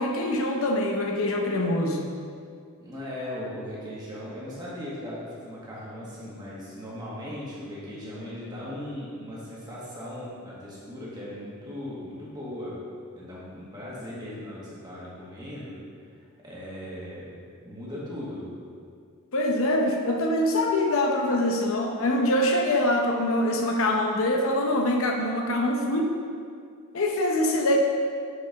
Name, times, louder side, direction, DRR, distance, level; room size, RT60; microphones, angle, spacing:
voice 1, 0.0-2.0 19.3-26.1 26.9-27.8, left 1 dB, 65° left, 1 dB, 0.7 m, -24 dB
voice 2, 2.8-12.7 13.1-15.8 16.4-17.3 17.6-18.4, left 1 dB, 20° right, -7 dB, 1.6 m, -38 dB
6.7 x 4.4 x 5.2 m, 2.3 s
head